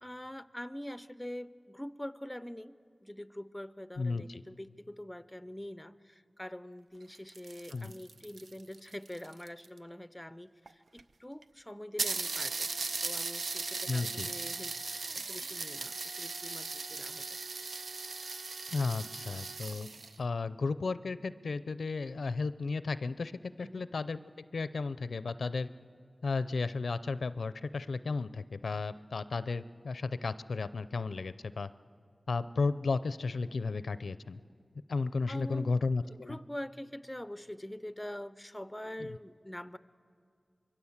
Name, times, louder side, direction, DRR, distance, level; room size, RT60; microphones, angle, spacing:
voice 1, 0.0-2.8 3.0-12.7 13.0-14.7 15.1-17.4 23.6-23.9 35.3-39.8, left 1 dB, 10° left, 14 dB, 0.6 m, -44 dB
voice 2, 4.0-4.4 7.7-7.9 13.9-14.3 18.7-19.9 20.2-23.3 23.6-24.2 24.5-25.7 26.2-31.7 32.3-34.4 34.9-36.4 39.0-39.1, left 4 dB, 90° left, 14 dB, 0.5 m, -34 dB
sound 1, 7.0-9.8 10.7-10.8 11.0-11.1 11.4-11.5 12.0-20.2, right 3 dB, 85° right, 0.6 m, -38 dB
25.0 x 22.0 x 7.3 m, 2.3 s
wide cardioid pair, 65°, 0 cm